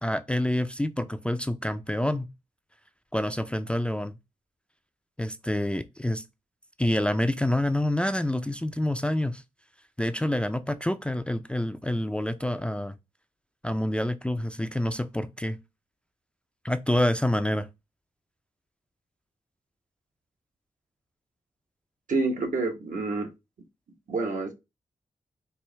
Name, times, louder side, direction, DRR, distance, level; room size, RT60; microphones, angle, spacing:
voice 1, 0.0-2.3 3.1-4.2 5.2-6.2 6.8-9.4 10.0-12.9 13.6-15.6 16.6-17.7, left 1 dB, 10° left, 0.4 m, -27 dB
voice 2, 22.1-23.3 24.1-24.5, right 3 dB, 70° right, 1.1 m, -28 dB
4.5 x 2.0 x 3.3 m
cardioid pair, 50°, 14 cm